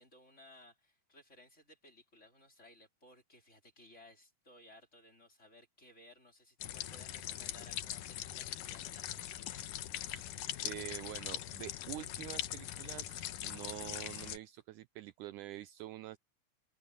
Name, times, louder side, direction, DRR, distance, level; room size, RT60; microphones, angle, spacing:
voice 1, 0.0-9.5, left 1 dB, 20° left, 3.9 m, -60 dB
sound 1, 6.6-14.4, left 12 dB, 75° left, 2.5 m, -41 dB
voice 2, 10.0-10.3 10.6-16.2, right 15 dB, 80° right, 1.9 m, -46 dB
open air
omnidirectional pair, 3.9 m